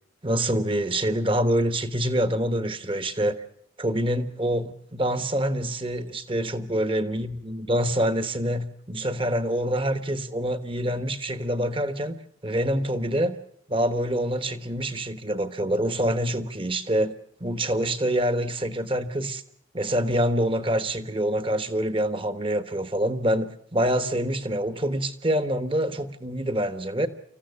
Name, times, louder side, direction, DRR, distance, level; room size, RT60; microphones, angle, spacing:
voice 1, 0.2-3.4 3.8-12.2 12.4-13.4 13.7-17.1 17.4-19.4 19.7-27.1, right 1 dB, 25° right, 12 dB, 1.3 m, -26 dB
26.5 x 15.0 x 9.6 m, 0.68 s
head